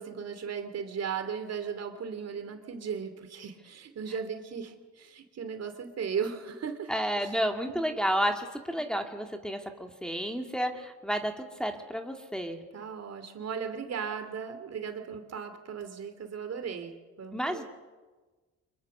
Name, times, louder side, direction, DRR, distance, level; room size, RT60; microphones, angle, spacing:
voice 1, 0.0-7.4 7.7-7.9 8.7-8.8 12.7-17.6, right 6 dB, 55° right, 8 dB, 3.0 m, -37 dB
voice 2, 6.9-12.6 17.3-17.6, equal, ahead, 3 dB, 2.2 m, -31 dB
25.0 x 22.0 x 6.8 m, 1.3 s
cardioid pair, 90°, 30 cm